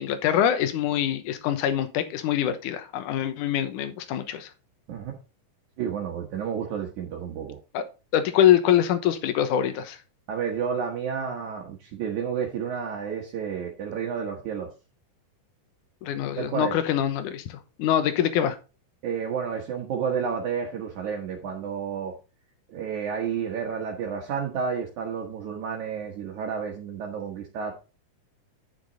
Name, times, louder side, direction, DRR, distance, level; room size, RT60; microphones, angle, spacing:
voice 1, 0.0-4.5 7.7-7.8 8.1-10.0 16.0-18.6, left 10 dB, 70° left, 2.4 m, -24 dB
voice 2, 5.8-7.6 10.3-14.7 16.4-16.7 19.0-22.1 22.7-27.7, right 7 dB, 65° right, 2.6 m, -31 dB
9.8 x 6.0 x 4.0 m
omnidirectional pair, 3.9 m